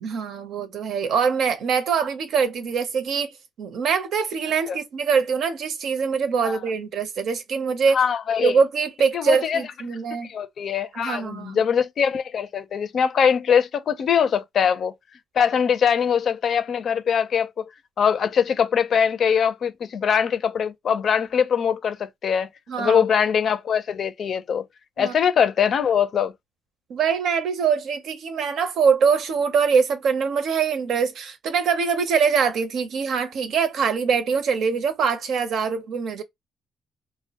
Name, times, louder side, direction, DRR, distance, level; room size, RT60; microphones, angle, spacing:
voice 1, 0.0-3.3 3.6-8.0 8.4-10.3 10.9-11.6 22.7-23.0 25.0-25.1 26.9-36.2, right 6 dB, 70° right, 0.6 m, -23 dB
voice 2, 7.9-8.6 9.1-9.6 9.9-10.0 10.3-14.9 15.3-17.6 18.0-22.5 22.8-24.6 25.0-26.3, left 7 dB, 60° left, 0.4 m, -22 dB
2.1 x 2.0 x 2.8 m
cardioid pair, 90°, 0 cm